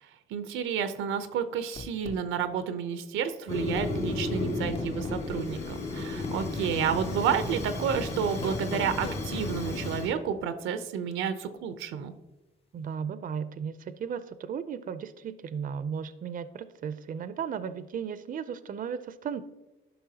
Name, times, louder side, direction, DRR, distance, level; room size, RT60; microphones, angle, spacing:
voice 1, 0.0-12.1, right 7 dB, 90° right, 10 dB, 0.6 m, -31 dB
sound 1, 1.8-2.2 3.8-4.0 4.7-5.3 6.2-6.4 7.3-7.4 8.4-9.2, left 4 dB, 30° left, 0.5 m, -40 dB
Fire, 3.5-10.1, left 2 dB, 60° left, 2.0 m, -33 dB
voice 2, 12.7-19.4, right 7 dB, 45° right, 13 dB, 0.5 m, -35 dB
12.5 x 5.7 x 2.8 m, 1.1 s
cardioid pair, 90°, 20 cm